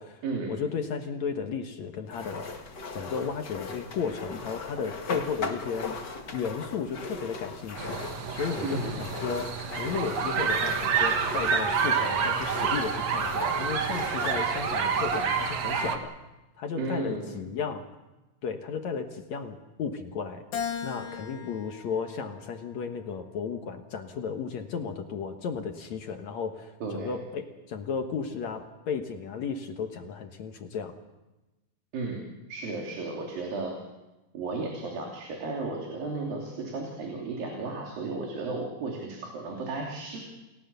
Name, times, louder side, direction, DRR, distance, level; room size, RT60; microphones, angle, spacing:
voice 1, 0.5-2.5 2.9-8.0 8.3-16.1 16.6-17.9 18.4-20.4 20.8-31.0, left 6 dB, 60° left, 5 dB, 2.3 m, -34 dB
sound 1, 2.1-15.3, left 4 dB, 35° left, 2.0 m, -38 dB
sound 2, 7.8-16.0, right 6 dB, 55° right, 2.5 m, -28 dB
voice 2, 8.6-8.9 16.8-17.3 26.8-27.1 31.9-32.2 32.5-33.8 34.3-40.2, right 3 dB, 75° right, 0 dB, 4.8 m, -34 dB
Keyboard (musical), 20.5-23.0 23.6-24.8, left 7 dB, 85° left, 3.8 m, -39 dB
30.0 x 18.0 x 6.9 m, 1.1 s
omnidirectional pair, 4.1 m